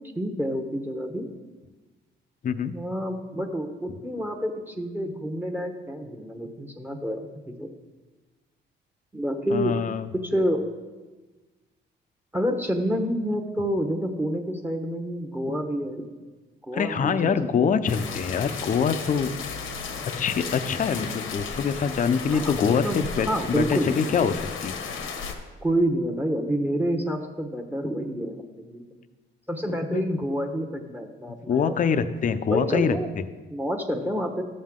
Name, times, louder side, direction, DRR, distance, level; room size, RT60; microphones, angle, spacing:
voice 1, 0.2-1.3 2.7-7.7 9.1-9.7 10.2-10.6 12.3-16.1 16.7-17.3 17.6-17.7 22.3-23.0 23.2-23.9 25.6-28.9 29.5-31.7 32.5-33.1 33.5-34.4, equal, 10° right, 5 dB, 1.0 m, -28 dB
voice 2, 2.4-2.7 9.5-10.1 16.7-19.3 20.2-24.7 29.9-30.2 31.5-33.0, left 6 dB, 40° left, 11 dB, 0.6 m, -24 dB
sound 1, 17.9-25.3, left 5 dB, 90° left, 1.1 m, -34 dB
12.5 x 7.5 x 3.7 m, 1.2 s
cardioid pair, 90°, 20 cm